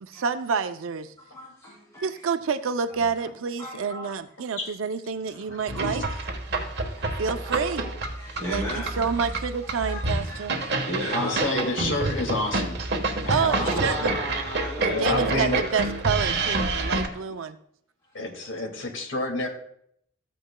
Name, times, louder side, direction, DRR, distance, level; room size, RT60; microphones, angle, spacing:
voice 1, 0.0-1.1 2.0-6.0 7.2-7.8 8.5-8.7 9.0-10.5 13.3-14.1 14.8-17.6, right 5 dB, 85° right, 10 dB, 0.5 m, -28 dB
voice 2, 1.3-2.2 3.6-4.1 5.7-5.9 6.5-7.0 7.4-7.5 8.2-9.2 9.8-11.8 13.0-15.9, equal, 20° left, -7 dB, 2.5 m, -35 dB
voice 3, 5.3-6.0 11.1-12.8 13.2-14.3 14.8-15.6 18.1-19.5, left 2 dB, 70° left, 1 dB, 2.1 m, -30 dB
sound 1, 5.7-17.1, right 2 dB, 55° right, 1.2 m, -28 dB
14.0 x 9.2 x 2.2 m, 0.70 s
head